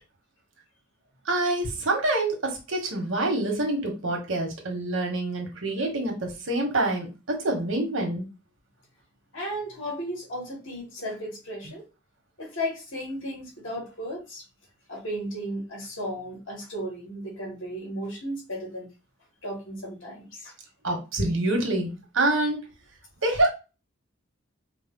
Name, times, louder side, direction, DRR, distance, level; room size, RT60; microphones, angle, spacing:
voice 1, 1.3-8.3 20.8-22.6 23.2-23.5, right 2 dB, 85° right, 1.5 m, -26 dB
voice 2, 9.3-11.8 12.4-14.4 14.9-18.9 19.4-20.5, equal, 75° left, 2.6 m, -35 dB
4.9 x 2.2 x 3.7 m
head